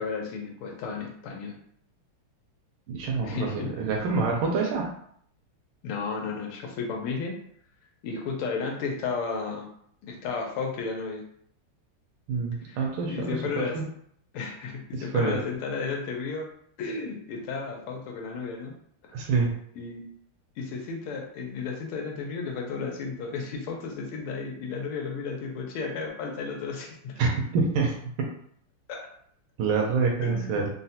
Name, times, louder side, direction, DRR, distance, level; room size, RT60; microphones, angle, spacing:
voice 1, 0.0-1.6 3.2-3.7 5.8-7.4 8.0-9.7 10.1-11.2 12.7-13.8 14.3-16.5 16.8-18.7 19.0-19.1 19.8-20.0 20.6-27.3 28.9-29.0 30.2-30.7, left 5 dB, 85° left, 1 dB, 1.5 m, -33 dB
voice 2, 2.9-4.9 12.3-13.4 13.7-13.8 15.1-15.4 19.1-19.5 27.2-28.0 29.6-30.7, right 4 dB, 80° right, -1 dB, 1.4 m, -26 dB
4.0 x 2.1 x 2.7 m, 0.65 s
omnidirectional pair, 2.4 m